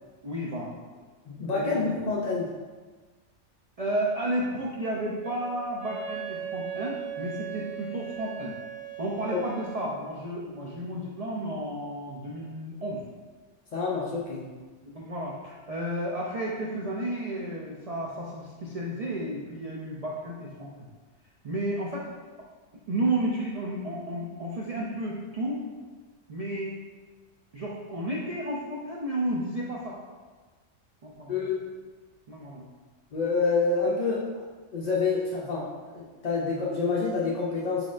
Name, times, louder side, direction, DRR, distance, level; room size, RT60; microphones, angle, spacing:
voice 1, 0.2-0.7 1.5-1.8 3.8-8.5 9.0-13.0 14.9-20.9 21.4-22.1 22.9-25.7 26.3-26.7 27.5-30.0 31.0-31.3 32.3-32.7, right 1 dB, 85° right, -4 dB, 0.3 m, -32 dB
voice 2, 1.3-2.5 9.3-9.4 13.7-14.5 31.3-31.6 33.1-34.3 34.7-37.9, left 4 dB, 55° left, -5 dB, 0.4 m, -27 dB
Wind instrument woodwind instrument, 5.2-9.9, right 9 dB, 45° right, 0.8 m, -38 dB
4.3 x 4.1 x 2.4 m, 1.4 s
omnidirectional pair, 1.3 m